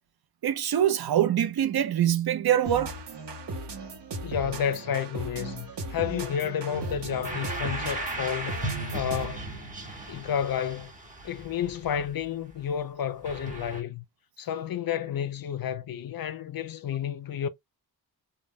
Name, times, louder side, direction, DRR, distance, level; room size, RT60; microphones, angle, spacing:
voice 1, 0.4-3.0, right 10 dB, 65° right, 0.6 m, -24 dB
sound 1, 2.6-9.5, right 2 dB, 85° right, 0.8 m, -37 dB
voice 2, 4.2-8.6 8.9-9.4 10.1-10.9 11.2-14.0 14.4-17.5, left 9 dB, 60° left, 0.5 m, -31 dB
sound 2, 6.7-12.7 13.2-13.8, right 2 dB, 20° right, 0.8 m, -37 dB
2.2 x 2.1 x 3.4 m
wide cardioid pair, 95°, 41 cm